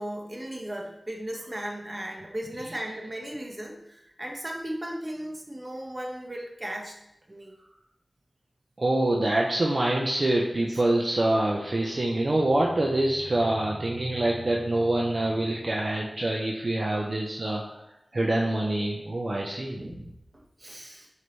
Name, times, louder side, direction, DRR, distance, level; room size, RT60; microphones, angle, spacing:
voice 1, 0.0-7.0 7.3-7.5 10.7-10.8 19.8-21.1, right 1 dB, 30° right, 0 dB, 1.5 m, -36 dB
voice 2, 8.8-17.6 18.1-19.8, right 1 dB, 50° right, -2 dB, 1.0 m, -25 dB
sound 1, 11.6-16.3, right 2 dB, 15° left, 2.1 m, -45 dB
11.0 x 5.2 x 3.4 m, 0.84 s
wide cardioid pair, 75°, 0 cm